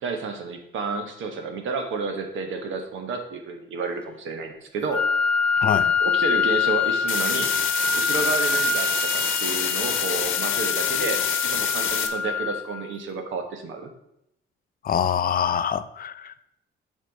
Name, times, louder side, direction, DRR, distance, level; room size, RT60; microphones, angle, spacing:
voice 1, 0.0-5.0 6.0-7.5 7.9-13.9, right 4 dB, 80° right, 1.3 m, -31 dB
Wind instrument woodwind instrument, 4.9-12.9, left 4 dB, 5° left, 0.7 m, -25 dB
voice 2, 5.6-5.9 14.8-16.5, left 8 dB, 45° left, 0.5 m, -25 dB
sound 1, 7.1-12.1, left 9 dB, 90° left, 0.9 m, -26 dB
7.4 x 4.4 x 5.3 m
cardioid pair, 90°, 20 cm